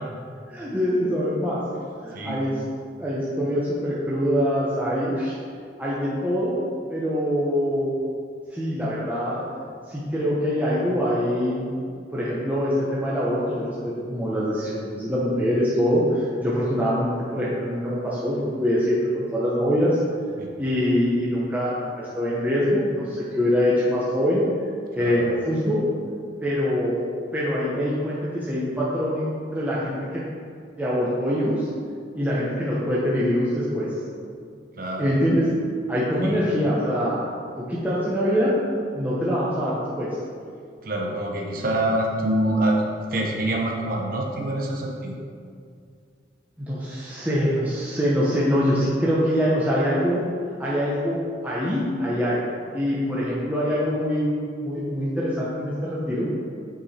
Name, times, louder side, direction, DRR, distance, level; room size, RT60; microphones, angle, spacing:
voice 1, 0.5-1.6 2.0-2.5 3.0-5.3 5.8-6.6 6.9-7.9 8.5-9.4 9.9-11.7 12.1-17.1 17.3-20.0 20.6-24.4 24.9-25.8 26.4-27.1 27.3-30.2 30.8-31.7 32.1-33.9 35.0-35.5 35.9-37.2 37.6-38.6 38.9-40.1 46.6-50.2 50.6-51.2 51.4-54.3 54.6-56.3, equal, 10° right, -8 dB, 0.9 m, -24 dB
voice 2, 34.8-35.1 36.2-36.5 40.8-45.1, right 1 dB, 50° right, 0 dB, 0.8 m, -26 dB
8.1 x 4.8 x 4.3 m, 2.2 s
head